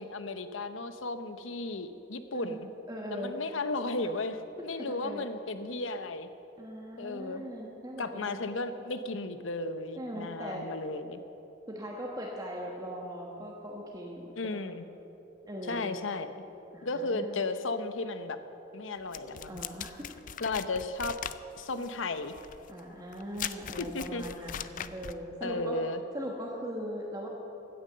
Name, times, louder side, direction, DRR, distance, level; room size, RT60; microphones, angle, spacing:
voice 1, 0.0-2.7 3.1-6.3 7.0-7.4 8.0-11.2 14.4-14.8 15.7-16.4 16.8-18.4 18.7-19.6 20.4-21.1 21.6-22.3 23.8-24.2 25.4-26.0, left 2 dB, 90° left, 10 dB, 0.8 m, -34 dB
voice 2, 2.9-3.3 4.6-5.3 6.6-8.9 10.0-10.7 11.7-14.6 15.5-15.9 16.7-17.4 19.2-19.9 22.7-25.8 26.1-27.3, equal, 20° right, -2 dB, 1.3 m, -40 dB
sound 1, 19.1-25.2, left 9 dB, 45° left, 0.4 m, -40 dB
16.0 x 9.2 x 6.7 m, 2.9 s
head